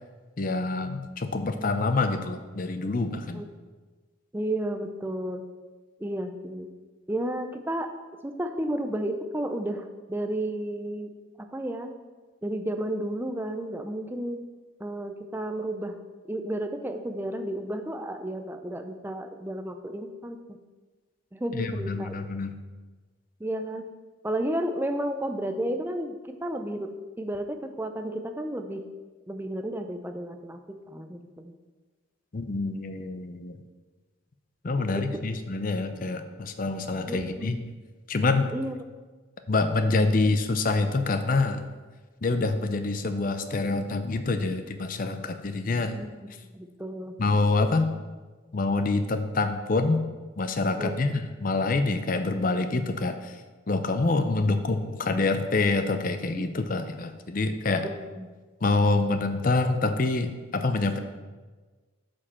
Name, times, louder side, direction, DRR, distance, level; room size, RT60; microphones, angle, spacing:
voice 1, 0.4-3.4 21.5-22.5 32.3-33.6 34.6-37.6 38.1-38.5 39.5-41.6 42.2-45.9 47.2-47.9 48.5-50.0 50.4-53.4 53.7-57.9 58.6-61.0, left 3 dB, 40° left, 8 dB, 0.5 m, -26 dB
voice 2, 4.3-5.4 6.0-6.7 7.1-7.9 8.2-11.1 11.4-11.9 12.4-14.5 14.8-16.0 16.3-20.6 21.3-22.2 23.4-23.8 24.2-28.8 29.3-31.5 34.8-35.2 37.1-37.6 38.5-38.8 46.0-47.1 50.8-51.0 56.4-56.5 58.1-58.3, right 1 dB, 10° right, 6 dB, 0.4 m, -32 dB
8.3 x 5.1 x 4.4 m, 1.3 s
head